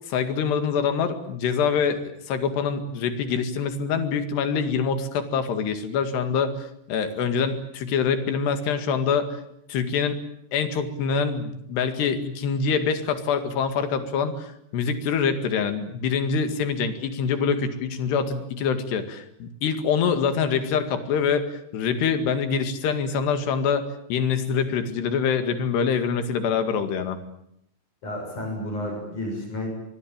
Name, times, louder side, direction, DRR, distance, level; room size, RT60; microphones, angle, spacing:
voice 1, 0.1-2.0 2.3-9.4 9.7-10.2 10.5-23.8 24.1-27.2, left 6 dB, 75° left, 9 dB, 4.2 m, -25 dB
voice 2, 28.0-29.7, left 1 dB, 45° left, 2 dB, 8.3 m, -31 dB
24.0 x 22.5 x 8.9 m, 0.77 s
omnidirectional pair, 5.0 m